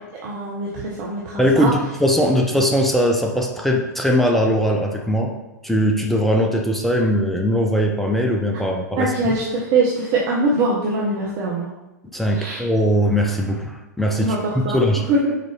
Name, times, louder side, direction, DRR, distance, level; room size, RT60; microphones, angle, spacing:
voice 1, 0.2-0.7 1.0-1.7 9.0-11.7 12.3-12.6 14.2-14.8 15.1-15.3, right 2 dB, 40° right, -4 dB, 1.3 m, -22 dB
voice 2, 1.4-5.3 5.6-9.3 12.1-15.1, equal, ahead, 1 dB, 0.8 m, -20 dB
6.0 x 4.5 x 4.4 m, 1.0 s
figure-of-eight pair, 105°, 10 cm